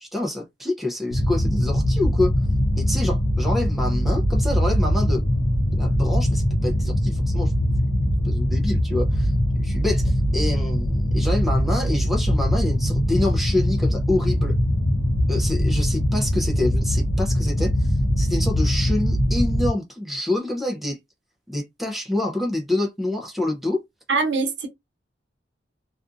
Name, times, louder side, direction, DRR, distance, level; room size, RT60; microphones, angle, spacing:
voice 1, 0.0-2.3 2.8-5.2 5.7-7.5 8.2-9.3 9.6-14.5 15.3-21.0 21.5-23.8, left 2 dB, ahead, 0.5 m, -27 dB
sound 1, 1.1-19.7, equal, 65° left, 0.7 m, -22 dB
voice 2, 24.1-24.7, right 4 dB, 70° right, 0.7 m, -22 dB
2.5 x 2.3 x 2.4 m
head